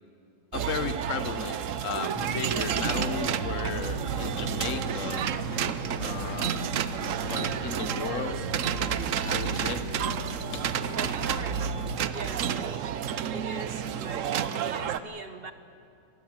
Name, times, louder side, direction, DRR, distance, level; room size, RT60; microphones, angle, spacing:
voice 1, 0.5-1.6 1.8-5.3 6.0-6.6 7.3-8.4 9.2-9.9 10.5-10.8, left 6 dB, 60° left, 9 dB, 0.8 m, -35 dB
sound 1, 0.5-15.0, right 9 dB, 90° right, 0.6 m, -30 dB
sound 2, 2.2-11.9, equal, 85° left, 2.8 m, -38 dB
voice 2, 10.9-11.7 12.1-12.9 13.2-15.5, right 3 dB, 45° right, 8 dB, 0.7 m, -41 dB
25.5 x 18.0 x 8.0 m, 2.6 s
omnidirectional pair, 2.3 m